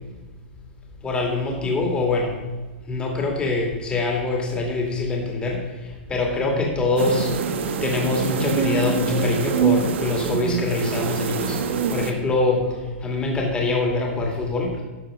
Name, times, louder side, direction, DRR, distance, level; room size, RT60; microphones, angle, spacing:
voice 1, 1.0-2.4 2.8-14.8, left 3 dB, 15° left, 0 dB, 2.4 m, -24 dB
sound 1, 7.0-12.1, right 6 dB, 80° right, 1.1 m, -25 dB
12.0 x 6.8 x 5.0 m, 1.3 s
supercardioid pair, 145°, 6 cm